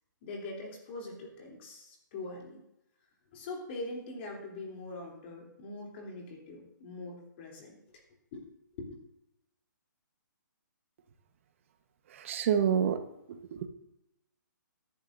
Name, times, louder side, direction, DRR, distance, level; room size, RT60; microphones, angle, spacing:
voice 1, 0.2-2.6 3.3-7.8 8.3-8.5 8.8-8.9, left 2 dB, 35° left, -1 dB, 3.1 m, -42 dB
voice 2, 12.1-13.0 13.3-13.7, right 8 dB, 40° right, 8 dB, 1.1 m, -28 dB
17.5 x 11.0 x 2.6 m, 0.84 s
hypercardioid pair, 160°, 11 cm